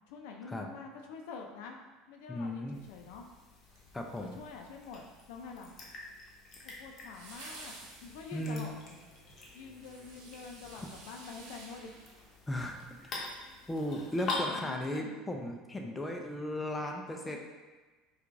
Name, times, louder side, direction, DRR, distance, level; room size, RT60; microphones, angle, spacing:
voice 1, 0.1-1.8 2.1-3.2 4.2-5.7 6.6-7.7 8.0-9.0 9.5-11.9 13.1-13.6 14.3-15.1 17.2-17.4, left 5 dB, 80° left, 2 dB, 0.4 m, -46 dB
voice 2, 2.3-2.8 3.9-4.4 8.3-8.7 10.7-10.9 12.5-13.3 13.7-17.4, left 1 dB, 10° left, 2 dB, 0.4 m, -36 dB
sound 1, 2.7-14.5, left 3 dB, 40° left, 0.8 m, -45 dB
sound 2, 3.7-4.6 7.1-12.9 13.3-13.4, right 2 dB, 75° right, 0.7 m, -53 dB
4.5 x 2.3 x 2.5 m, 1.3 s
supercardioid pair, 115°, 0 cm